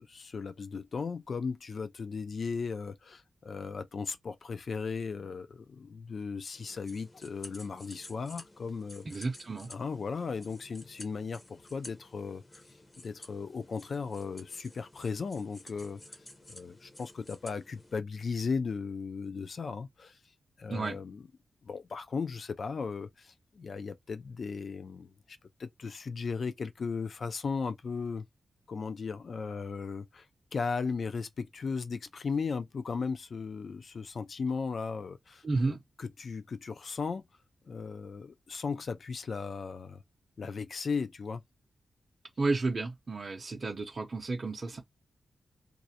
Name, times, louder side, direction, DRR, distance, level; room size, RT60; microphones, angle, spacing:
voice 1, 0.0-9.1 9.7-12.6 13.0-16.0 16.5-20.2 20.6-21.2 21.6-28.3 28.7-30.3 30.5-37.3 37.7-40.0 40.4-41.4, left 5 dB, 60° left, 0.4 m, -36 dB
sound 1, 6.5-18.0, left 1 dB, 25° left, 0.7 m, -52 dB
voice 2, 9.0-9.7 20.7-21.0 35.4-35.8 42.4-44.8, right 3 dB, 40° right, 0.6 m, -32 dB
2.4 x 2.1 x 2.7 m
wide cardioid pair, 95°, 0 cm